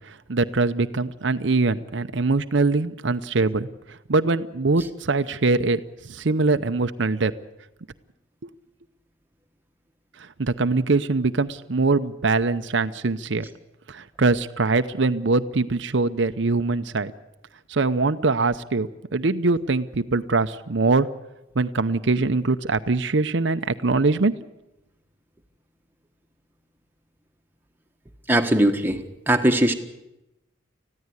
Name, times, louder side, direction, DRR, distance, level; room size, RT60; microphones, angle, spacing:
voice 1, 0.1-3.7 4.1-7.3 10.4-13.5 13.9-17.1 17.7-21.1 21.6-24.3, right 3 dB, 65° right, 10 dB, 0.7 m, -23 dB
voice 2, 28.3-29.7, right 1 dB, 10° right, 5 dB, 1.4 m, -20 dB
20.5 x 15.0 x 9.6 m, 0.94 s
head